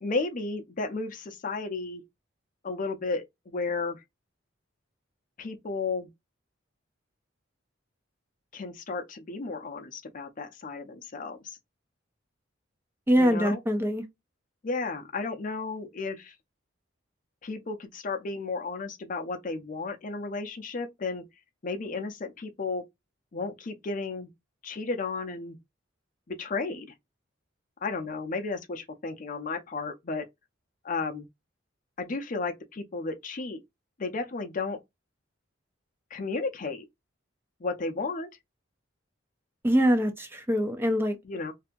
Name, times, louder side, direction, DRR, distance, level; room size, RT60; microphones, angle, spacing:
voice 1, 0.0-2.0 2.6-4.0 5.4-6.1 8.5-11.6 13.2-13.6 14.6-16.3 17.4-21.3 21.6-22.8 23.3-24.3 24.6-25.6 26.3-26.9 27.8-30.3 30.8-31.3 32.0-33.6 34.0-34.8 36.1-36.8 37.6-38.3 41.2-41.5, left 3 dB, 45° left, 0.5 m, -33 dB
voice 2, 13.1-14.0 39.6-41.2, equal, 10° right, 0.3 m, -24 dB
2.7 x 2.3 x 2.5 m
head